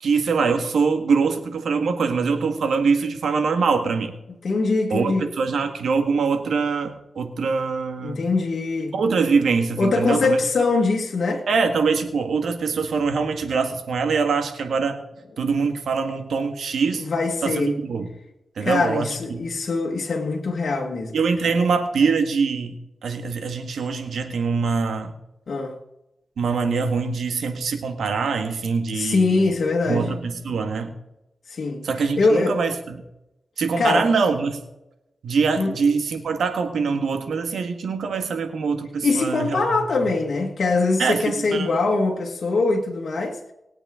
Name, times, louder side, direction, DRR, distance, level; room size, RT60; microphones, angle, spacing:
voice 1, 0.0-4.1 4.9-8.2 8.9-10.4 11.5-15.0 15.4-17.1 17.4-18.1 18.6-19.5 21.1-22.7 23.0-25.1 26.4-29.5 29.9-30.9 31.8-32.7 33.6-34.6 35.2-39.8 41.0-41.7, right 5 dB, 85° right, 1.7 m, -23 dB
voice 2, 4.4-5.3 8.0-9.0 9.8-11.5 15.4-15.5 17.0-17.8 18.6-21.2 21.4-21.5 25.5-25.8 28.9-30.1 31.5-31.8 32.2-32.6 33.8-34.1 35.6-35.7 39.0-43.5, left 3 dB, 70° left, 1.8 m, -22 dB
21.0 x 8.4 x 3.8 m
cardioid pair, 60°, 0 cm